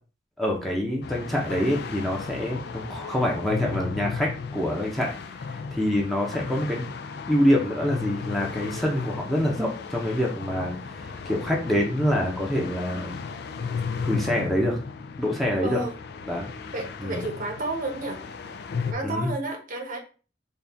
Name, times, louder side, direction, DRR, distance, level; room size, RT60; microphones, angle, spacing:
voice 1, 0.4-5.1 5.5-6.9 7.3-13.2 14.0-14.8 15.2-15.8 16.3-16.5 17.0-17.2 19.0-19.3, left 1 dB, ahead, -3 dB, 0.7 m, -26 dB
sound 1, 1.0-18.9, left 5 dB, 60° left, 0.4 m, -35 dB
voice 2, 15.6-15.9 16.7-18.2 18.9-20.0, right 2 dB, 50° right, 3 dB, 0.8 m, -31 dB
4.1 x 2.4 x 3.4 m, 0.36 s
head